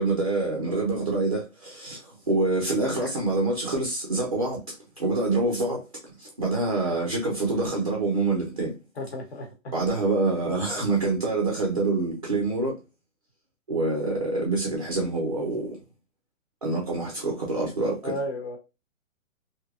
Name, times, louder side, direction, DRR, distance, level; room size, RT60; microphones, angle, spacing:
voice 1, 0.0-5.8 6.2-8.7 9.7-12.8 13.7-15.8 16.6-18.1, right 2 dB, 30° right, 0.4 m, -26 dB
voice 2, 9.0-9.7 18.0-18.6, left 1 dB, 50° left, 1.0 m, -34 dB
3.2 x 2.7 x 2.4 m
hypercardioid pair, 165°, 41 cm